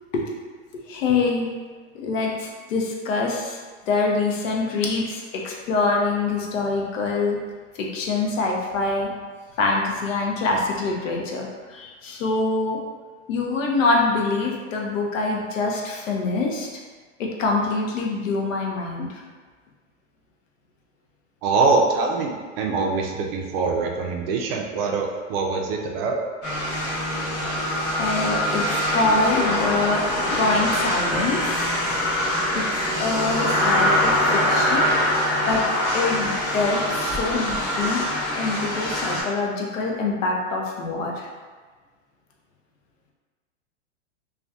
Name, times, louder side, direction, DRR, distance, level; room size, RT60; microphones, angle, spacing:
voice 1, 0.9-1.5 1.9-3.6 3.9-7.4 7.8-9.1 9.6-12.8 13.3-16.7 17.2-19.1 28.0-30.0 30.4-31.7 32.5-32.6 33.0-34.9 35.5-35.6 35.9-38.0 38.4-41.3, left 3 dB, 80° left, -1 dB, 0.7 m, -25 dB
voice 2, 21.4-26.2, right 3 dB, 55° right, 1 dB, 0.5 m, -23 dB
sound 1, 26.4-39.2, left 1 dB, 25° left, 0.8 m, -23 dB
2.6 x 2.2 x 2.2 m, 1.4 s
hypercardioid pair, 125°, 38 cm